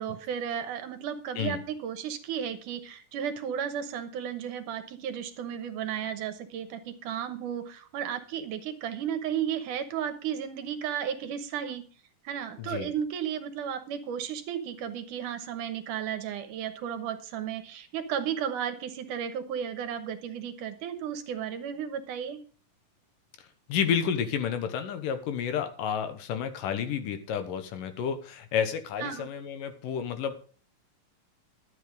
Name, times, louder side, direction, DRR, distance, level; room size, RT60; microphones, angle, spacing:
voice 1, 0.0-11.8 12.2-22.4 29.0-29.3, right 8 dB, 75° right, 9 dB, 2.5 m, -34 dB
voice 2, 12.6-12.9 23.7-30.4, left 8 dB, 75° left, 9 dB, 2.8 m, -30 dB
12.0 x 8.6 x 5.1 m, 0.40 s
omnidirectional pair, 3.9 m